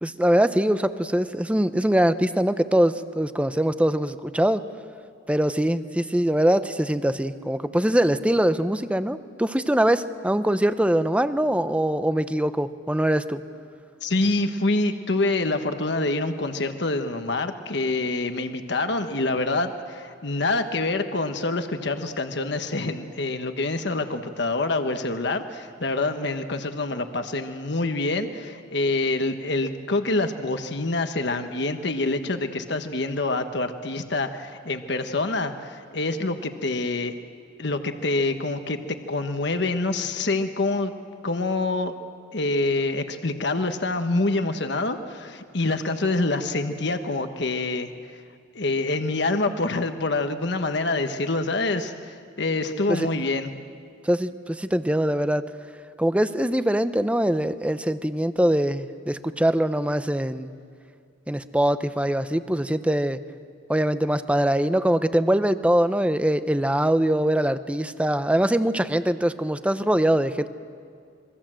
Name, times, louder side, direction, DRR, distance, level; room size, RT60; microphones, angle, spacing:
voice 1, 0.0-4.6 5.3-13.4 52.9-53.1 54.0-55.4 56.0-60.5 61.3-63.2 63.7-70.5, right 1 dB, 5° right, 11 dB, 0.7 m, -23 dB
voice 2, 14.0-37.2 37.6-40.9 41.2-41.9 42.3-47.9 48.5-53.5, left 2 dB, 65° left, 7 dB, 1.3 m, -26 dB
27.5 x 22.5 x 7.7 m, 2.3 s
head